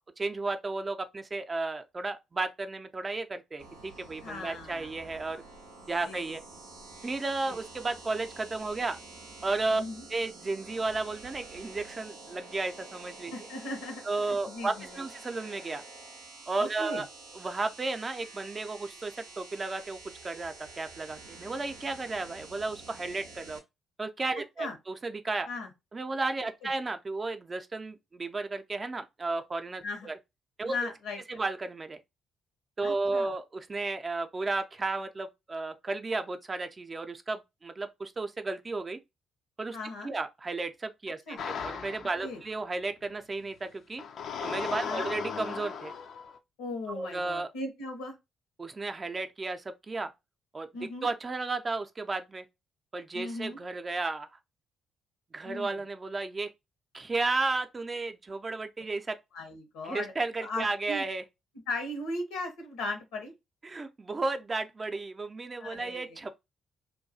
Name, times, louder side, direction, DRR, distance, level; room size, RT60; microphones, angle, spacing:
voice 1, 0.2-5.4 5.9-6.4 7.0-9.0 9.4-9.8 10.1-13.3 14.0-15.8 16.5-17.1 17.3-20.0 20.2-23.6 24.0-25.5 25.9-30.2 30.6-30.9 31.3-32.0 32.8-39.0 39.6-39.8 40.0-44.0 44.4-45.9 46.9-47.5 48.6-50.1 50.5-50.7 51.0-52.5 52.9-54.3 55.3-56.5 56.9-59.2 59.8-61.2 63.6-66.3, right 3 dB, 35° right, 0.4 m, -33 dB
sound 1, 3.6-23.6, right 3 dB, 85° right, 0.5 m, -48 dB
voice 2, 4.2-4.9 5.8-6.4 7.4-7.6 9.7-10.0 13.3-15.0 16.6-17.0 24.6-24.7 25.5-25.7 26.6-26.7 29.8-30.1 30.6-31.4 32.8-33.3 39.7-40.1 41.3-41.4 42.2-42.4 44.8-45.1 46.6-48.1 50.7-51.1 53.1-53.6 55.4-55.8 59.3-60.1 60.4-61.0 61.7-63.3 65.6-66.2, left 2 dB, 80° left, 0.8 m, -38 dB
sound 2, 41.4-42.4 44.0-46.4, left 6 dB, 65° left, 0.3 m, -36 dB
2.3 x 2.2 x 2.6 m
hypercardioid pair, 50°, 0 cm